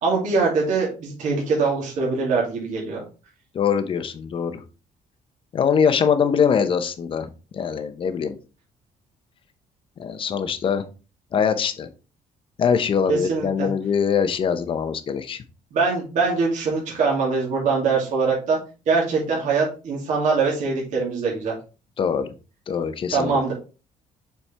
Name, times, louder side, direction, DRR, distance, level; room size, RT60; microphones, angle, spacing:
voice 1, 0.0-3.0 13.1-13.7 15.7-18.6 18.9-21.5 23.1-23.5, right 4 dB, 65° right, -3 dB, 2.5 m, -23 dB
voice 2, 3.5-4.6 5.5-8.4 10.0-10.8 11.3-11.9 12.6-15.4 22.0-22.3 22.7-23.5, left 7 dB, 40° left, 10 dB, 0.7 m, -23 dB
7.1 x 4.4 x 3.3 m, 0.33 s
cardioid pair, 150°, 14 cm